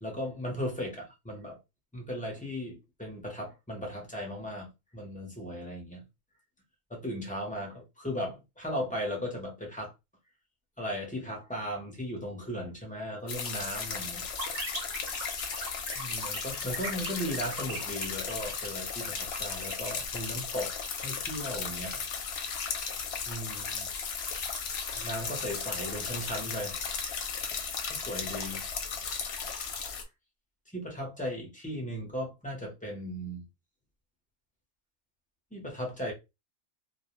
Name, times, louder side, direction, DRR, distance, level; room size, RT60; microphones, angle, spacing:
voice 1, 0.0-1.6 1.9-6.0 6.9-9.9 10.8-14.2 15.9-20.7 21.0-22.1 23.3-23.9 25.0-26.8 27.9-28.6 30.7-33.4 35.5-36.1, equal, 10° left, 0.4 m, -37 dB
sound 1, 13.3-30.0, left 6 dB, 65° left, 0.7 m, -35 dB
sound 2, 14.4-20.0, right 3 dB, 85° right, 1.0 m, -39 dB
2.4 x 2.0 x 2.9 m
omnidirectional pair, 1.3 m